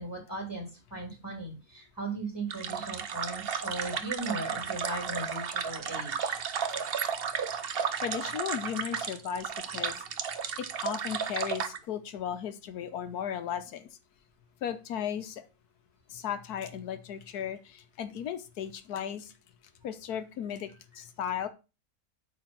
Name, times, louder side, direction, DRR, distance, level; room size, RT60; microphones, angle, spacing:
voice 1, 0.0-6.4, right 2 dB, 15° right, 1 dB, 4.2 m, -38 dB
sound 1, 2.5-11.8, right 7 dB, 50° right, 0.8 m, -33 dB
voice 2, 8.0-10.0 10.6-13.9 14.6-15.5 16.1-19.3 19.8-21.5, left 9 dB, 85° left, 10 dB, 1.4 m, -36 dB
8.6 x 4.4 x 5.9 m, 0.29 s
omnidirectional pair, 1.6 m